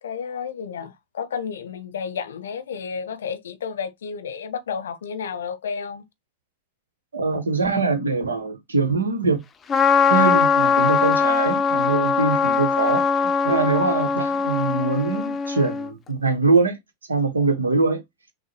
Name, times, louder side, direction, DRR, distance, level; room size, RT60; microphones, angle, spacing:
voice 1, 0.0-6.0, left 6 dB, 65° left, 0.6 m, -31 dB
voice 2, 7.1-9.4 10.0-16.8 17.1-18.0, right 3 dB, 75° right, 1.1 m, -23 dB
Trumpet, 9.7-15.9, left 6 dB, 20° left, 0.6 m, -21 dB
5.9 x 2.2 x 3.0 m
figure-of-eight pair, 90°, 0 cm